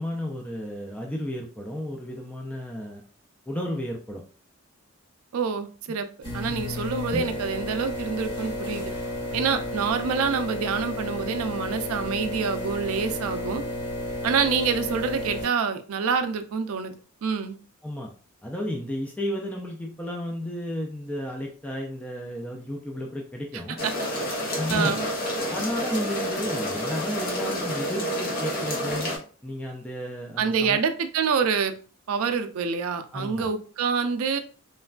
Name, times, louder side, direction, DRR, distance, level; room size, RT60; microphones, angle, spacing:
voice 1, 0.0-3.0 3.5-4.2 6.5-6.7 9.3-9.6 17.8-18.1 18.4-23.8 24.5-25.0 25.5-29.1 29.4-30.8 33.1-33.5, equal, 5° left, 0 dB, 0.3 m, -33 dB
voice 2, 5.3-6.1 6.3-8.9 9.3-13.6 14.2-16.9 17.2-17.6 24.7-25.0 30.4-31.7 32.1-34.4, right 5 dB, 75° right, 8 dB, 0.4 m, -26 dB
sound 1, 6.2-15.4, left 1 dB, 25° left, 1.1 m, -32 dB
sound 2, 23.8-29.2, equal, 45° left, 0.7 m, -29 dB
3.2 x 2.1 x 2.3 m, 0.39 s
head